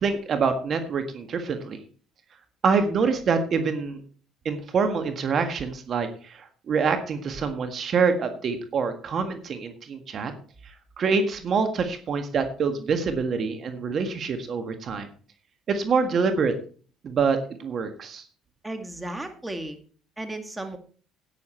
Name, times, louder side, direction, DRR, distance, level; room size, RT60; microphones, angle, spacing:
voice 1, 0.0-1.8 2.6-4.0 4.4-10.3 11.0-15.1 15.7-16.5 17.0-18.2, right 5 dB, 50° right, 8 dB, 1.7 m, -25 dB
voice 2, 18.6-19.8 20.2-20.8, right 1 dB, 10° right, 6 dB, 2.2 m, -34 dB
11.5 x 9.6 x 4.5 m, 0.41 s
supercardioid pair, 90°, 0 cm